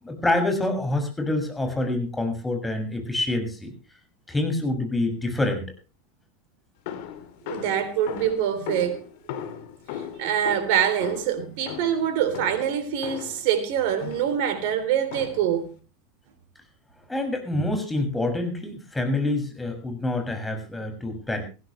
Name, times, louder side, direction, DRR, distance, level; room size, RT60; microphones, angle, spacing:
voice 1, 0.0-3.7 4.3-5.7 17.1-21.4, left 2 dB, 10° left, 6.7 m, -26 dB
sound 1, 6.9-13.5 14.0-14.5 15.1-15.6, left 9 dB, 65° left, 3.0 m, -37 dB
voice 2, 7.4-9.0 10.0-15.7, right 9 dB, 60° right, 3.5 m, -25 dB
19.5 x 16.0 x 3.2 m
hypercardioid pair, 85°, 0 cm